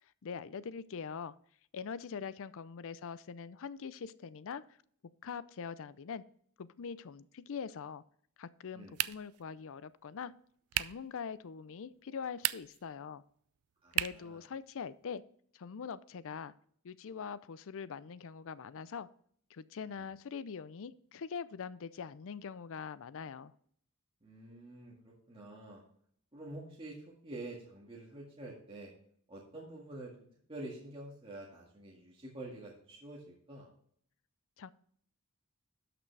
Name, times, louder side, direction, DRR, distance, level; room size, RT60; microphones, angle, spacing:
voice 1, 0.2-1.3 1.7-4.8 5.2-6.2 6.6-8.0 8.4-10.3 10.7-13.2 13.9-15.2 15.5-16.5 16.8-19.1 19.5-23.5 34.6-34.7, left 6 dB, 65° left, 17 dB, 0.5 m, -43 dB
sound 1, 8.9-9.4 10.7-11.1 12.3-12.9 13.9-14.3, right 15 dB, 75° right, 0.4 m, -34 dB
voice 2, 13.8-14.4 19.9-20.1 24.2-25.8 26.3-28.9 29.3-33.7, right 2 dB, 25° right, -4 dB, 1.8 m, -48 dB
12.0 x 5.9 x 3.3 m, 0.62 s
head